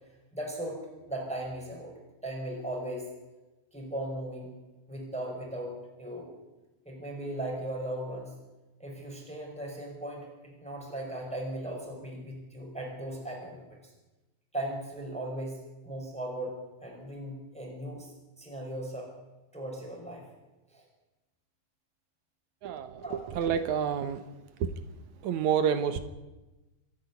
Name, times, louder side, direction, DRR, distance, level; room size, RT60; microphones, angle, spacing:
voice 1, 0.3-0.8 1.1-1.9 2.2-3.1 3.7-4.5 4.9-5.7 6.0-6.3 6.9-8.4 8.8-13.8 14.5-16.6 16.8-18.1 18.4-19.1 19.5-20.2 20.7-20.8 23.0-23.2, right 1 dB, ahead, -1 dB, 5.3 m, -37 dB
voice 2, 22.6-24.2 24.6-24.7 25.2-26.0, right 8 dB, 65° right, 10 dB, 2.4 m, -29 dB
26.5 x 10.5 x 9.7 m, 1.1 s
omnidirectional pair, 3.9 m